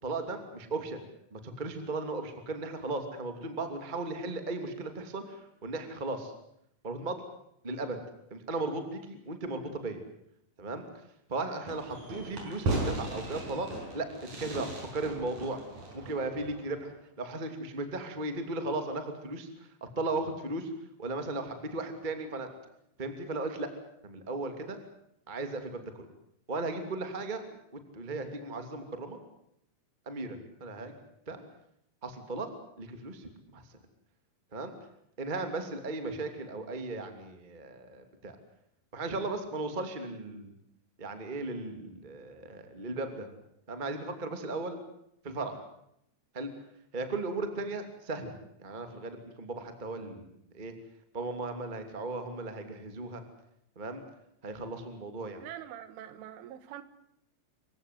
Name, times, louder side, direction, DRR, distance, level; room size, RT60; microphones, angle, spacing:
voice 1, 0.0-1.0 1.3-6.3 6.8-7.2 7.6-8.0 8.3-10.0 10.6-10.8 11.3-15.6 15.9-19.7 19.9-20.7 21.0-22.5 23.0-23.7 24.0-24.8 25.3-25.8 26.5-27.4 27.9-29.2 30.0-30.9 31.3-31.4 32.0-32.5 32.8-33.6 34.5-34.7 35.2-38.3 38.9-40.5 41.0-43.3 43.7-44.8 45.2-45.6 46.3-46.5 46.9-50.7 51.1-53.2 53.7-54.0 54.4-55.4, right 2 dB, 15° right, 7 dB, 1.8 m, -36 dB
Fireworks, 11.7-16.9, right 2 dB, 40° right, 6.5 m, -37 dB
voice 2, 55.4-56.8, right 11 dB, 90° right, 13 dB, 4.1 m, -44 dB
27.0 x 16.0 x 9.4 m, 0.75 s
omnidirectional pair, 5.4 m